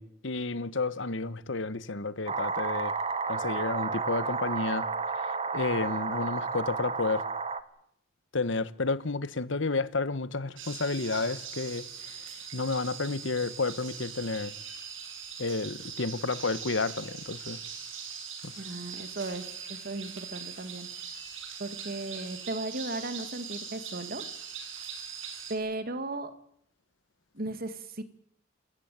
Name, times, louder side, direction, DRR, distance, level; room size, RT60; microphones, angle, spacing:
voice 1, 0.0-3.0 3.3-4.9 5.1-7.2 8.3-11.9 12.5-14.5 15.4-17.6 18.4-18.6, left 3 dB, 70° left, 1.2 m, -31 dB
sound 1, 2.3-7.6, right 4 dB, 30° right, 1.3 m, -32 dB
sound 2, 10.6-25.5, right 7 dB, 80° right, 6.0 m, -41 dB
voice 2, 18.6-20.9 21.6-24.2 25.5-26.3 27.3-28.0, right 2 dB, 50° right, 2.0 m, -36 dB
28.5 x 14.0 x 9.2 m
head